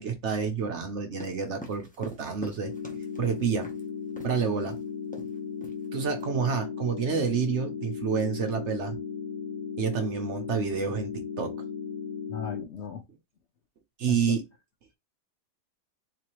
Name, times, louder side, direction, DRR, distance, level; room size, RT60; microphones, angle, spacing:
voice 1, 0.0-2.7 3.2-3.7 4.2-4.8 5.9-8.9 9.8-11.1 11.4-11.5 14.0-14.4, right 6 dB, 55° right, 0.9 m, -28 dB
sound 1, 1.1-3.8 4.2-4.3 4.7-4.8 5.1-5.4 5.6-6.2, equal, 10° left, 0.5 m, -44 dB
sound 2, 2.6-12.6, left 6 dB, 90° left, 1.3 m, -36 dB
voice 2, 12.3-13.0 14.1-14.4, left 7 dB, 70° left, 0.6 m, -37 dB
4.1 x 2.8 x 3.0 m
omnidirectional pair, 1.7 m